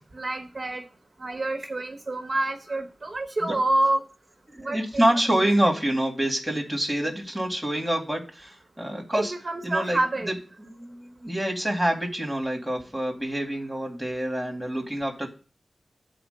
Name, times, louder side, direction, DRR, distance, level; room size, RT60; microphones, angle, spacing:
voice 1, 0.2-0.8 1.2-4.0 4.6-5.0 9.1-10.3, right 2 dB, 35° right, 4 dB, 1.1 m, -27 dB
voice 2, 4.5-9.3 9.6-10.0 10.3-15.3, right 1 dB, ahead, 1 dB, 2.2 m, -27 dB
7.8 x 4.5 x 6.6 m, 0.34 s
wide cardioid pair, 120°, 0 cm